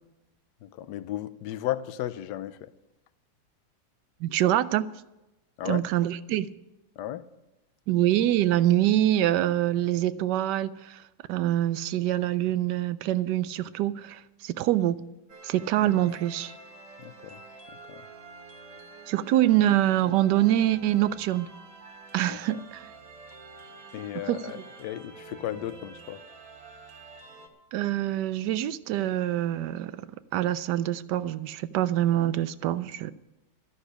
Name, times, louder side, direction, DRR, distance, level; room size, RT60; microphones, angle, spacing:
voice 1, 0.6-2.7 5.6-5.8 7.0-7.3 15.8-15.9 17.0-17.4 17.9-18.1 22.3-22.6 23.9-26.2, left 13 dB, 70° left, 1.1 m, -35 dB
voice 2, 4.2-4.8 5.7-6.5 7.9-11.0 11.3-15.0 15.4-16.5 19.1-21.5 22.1-22.9 24.3-24.6 27.7-29.9 30.3-33.1, right 13 dB, 70° right, 1.1 m, -25 dB
sound 1, 15.3-27.5, right 3 dB, 50° right, 1.8 m, -48 dB
12.5 x 6.5 x 9.9 m
omnidirectional pair, 2.1 m